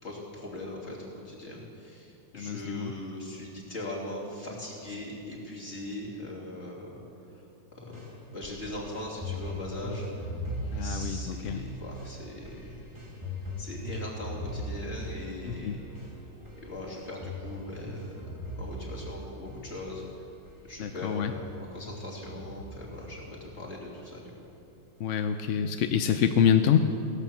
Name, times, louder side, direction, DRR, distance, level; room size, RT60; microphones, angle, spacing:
voice 1, 0.0-7.0 7.7-8.0 8.3-10.3 10.8-12.9 13.6-15.8 16.6-18.2 18.5-20.1 20.6-24.3, left 1 dB, 40° left, -4 dB, 3.2 m, -40 dB
voice 2, 2.4-2.9 10.7-11.6 15.5-15.8 20.8-21.3 25.0-26.8, left 8 dB, 60° left, 7 dB, 0.8 m, -26 dB
sound 1, 7.9-20.1 20.5-20.6 21.0-23.1 23.5-24.0 24.5-24.6, equal, 15° right, 2.9 m, -39 dB
17.5 x 11.5 x 7.1 m, 2.8 s
omnidirectional pair, 1.8 m